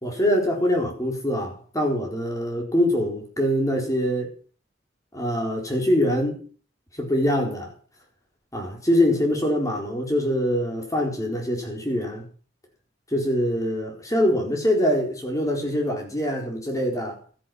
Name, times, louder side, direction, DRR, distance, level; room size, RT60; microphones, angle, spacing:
voice 1, 0.0-4.3 5.1-6.4 6.9-7.7 8.5-12.2 13.1-17.2, equal, 20° left, 4.3 m, -24 dB
13.5 x 10.5 x 6.0 m
head